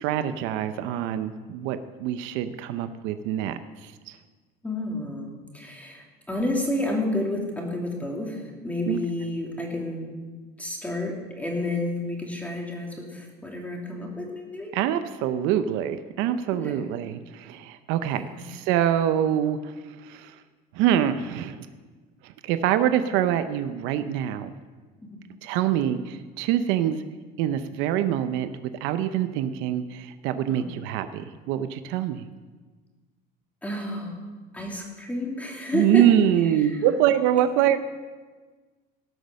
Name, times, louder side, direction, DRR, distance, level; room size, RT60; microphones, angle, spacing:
voice 1, 0.0-4.2 8.9-9.0 14.7-19.7 20.0-20.4 20.7-21.6 22.2-24.5 25.4-27.0 27.4-28.5 28.8-32.2 35.7-37.8, right 10 dB, 75° right, 10 dB, 0.7 m, -25 dB
voice 2, 4.6-10.1 10.6-14.7 16.6-16.8 18.1-18.4 30.5-30.7 33.6-34.2 34.5-36.0 36.6-36.8, left 1 dB, 5° left, -1 dB, 2.8 m, -30 dB
18.5 x 6.3 x 6.5 m, 1.4 s
cardioid pair, 125°, 20 cm